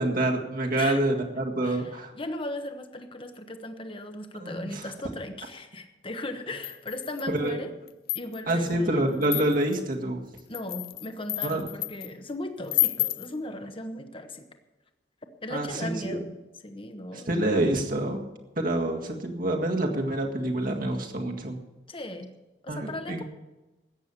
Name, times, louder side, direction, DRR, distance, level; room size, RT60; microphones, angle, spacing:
voice 1, 0.0-2.1 4.4-4.9 7.3-7.6 8.5-10.2 11.4-11.7 15.5-16.2 17.1-18.3 18.6-21.6 22.7-23.2, right 1 dB, 55° right, 2 dB, 1.9 m, -27 dB
voice 2, 1.6-7.7 8.1-9.5 10.5-14.5 15.4-16.3 16.6-17.3 21.9-22.3 22.6-23.2, left 1 dB, 30° left, 7 dB, 1.2 m, -37 dB
sound 1, 6.6-7.4 7.9-8.6 9.2-9.8 10.4-12.1 12.7-13.3, left 18 dB, 60° left, 0.5 m, -30 dB
14.0 x 9.2 x 6.9 m, 1.1 s
head